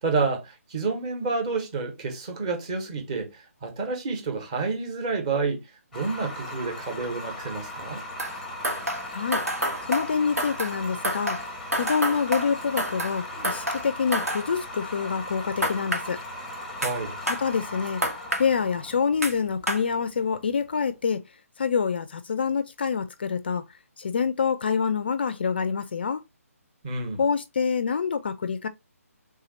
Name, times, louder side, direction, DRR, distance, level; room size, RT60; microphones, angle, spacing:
voice 1, 0.0-5.6 5.9-8.0 16.8-17.2 26.8-27.2, right 4 dB, 25° right, 1.1 m, -29 dB
sound 1, 5.9-20.9, left 1 dB, 5° left, 0.7 m, -38 dB
sound 2, 8.2-8.4 8.6-10.8 11.0-13.2 13.4-14.4 15.6-16.0 16.8-16.9 17.3-17.4 18.0-18.5 19.2-19.3 19.7-19.8, equal, 80° right, 1.4 m, -28 dB
voice 2, 9.1-9.4 9.9-11.4 11.7-16.2 17.3-18.0 18.4-21.2 21.6-23.6 24.0-26.2 27.2-28.7, left 6 dB, 40° left, 0.4 m, -26 dB
3.7 x 2.8 x 4.0 m
figure-of-eight pair, 145°, 8 cm